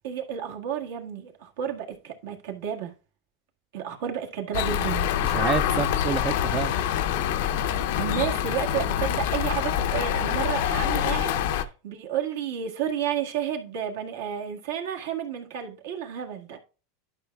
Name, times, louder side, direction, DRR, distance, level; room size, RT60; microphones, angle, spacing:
voice 1, 0.0-2.9 3.7-5.1 8.0-16.6, right 9 dB, 75° right, 1.7 m, -31 dB
sound 1, 4.5-11.6, left 10 dB, 70° left, 0.6 m, -25 dB
voice 2, 5.2-6.7, right 7 dB, 35° right, 0.4 m, -28 dB
11.5 x 5.6 x 2.3 m
hypercardioid pair, 110°, 0 cm